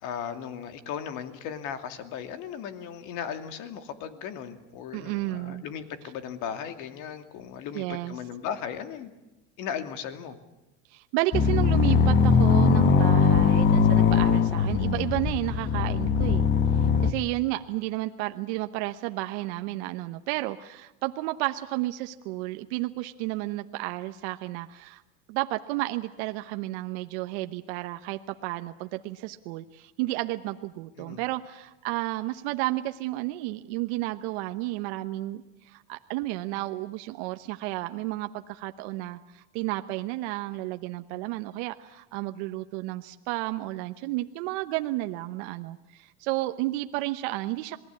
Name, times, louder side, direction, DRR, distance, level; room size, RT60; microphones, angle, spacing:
voice 1, 0.0-9.1 9.6-10.4 31.0-31.2, left 8 dB, 55° left, 8 dB, 2.6 m, -36 dB
voice 2, 4.9-5.6 7.7-8.1 10.9-16.5 17.0-25.0 25.3-47.8, right 18 dB, 65° right, 8 dB, 1.0 m, -32 dB
sound 1, 11.3-17.1, left 5 dB, 30° left, 1.3 m, -21 dB
27.0 x 19.5 x 8.4 m, 1.0 s
supercardioid pair, 125°, 37 cm